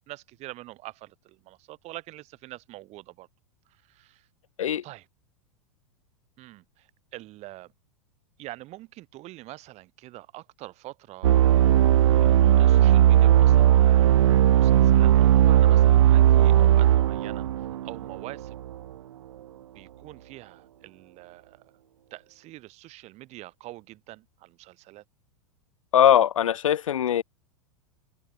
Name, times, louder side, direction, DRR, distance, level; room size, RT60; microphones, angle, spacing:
voice 1, 0.0-3.3 3.7-4.3 4.8-5.1 6.4-7.7 8.4-11.4 11.8-17.5 17.8-18.6 19.7-21.7 22.1-25.0, right 18 dB, 40° right, 6.3 m, -45 dB
sound 1, 11.2-18.8, right 12 dB, 65° right, 0.4 m, -18 dB
voice 2, 25.9-27.2, left 10 dB, 65° left, 3.0 m, -20 dB
figure-of-eight pair, 95°, 18 cm